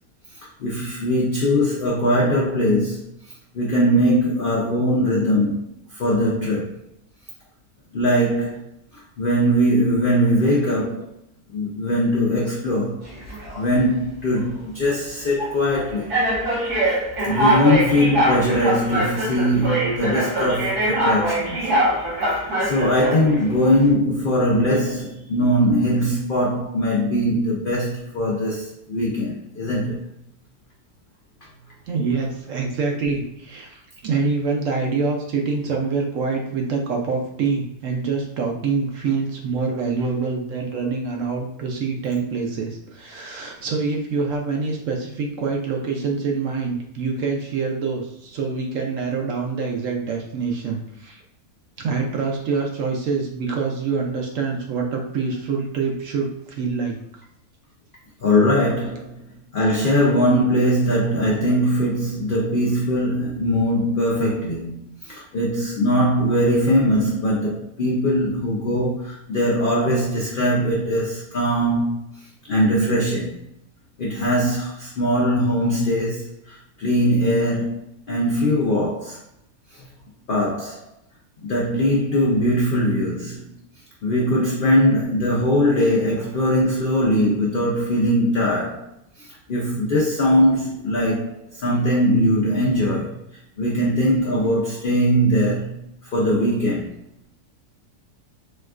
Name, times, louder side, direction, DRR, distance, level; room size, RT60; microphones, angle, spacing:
voice 1, 0.6-3.0 3.5-5.6 5.9-6.7 7.9-8.7 9.2-11.1 11.5-13.0 13.5-16.1 17.3-21.6 22.6-30.0 58.2-59.2 59.5-71.9 72.5-73.4 74.0-79.2 79.7-79.8 80.3-80.8 81.4-83.4 84.0-88.9 89.2-93.2 93.6-95.8 96.1-96.9, equal, 75° left, -4 dB, 0.4 m, -21 dB
sound 1, 13.1-13.6 14.3-14.5 15.4-15.5 16.1-23.4, right 1 dB, 80° right, 1.8 m, -23 dB
voice 2, 31.9-51.2 51.8-56.9, right 4 dB, 65° right, 1 dB, 0.9 m, -25 dB
4.2 x 2.3 x 2.4 m, 0.76 s
omnidirectional pair, 1.7 m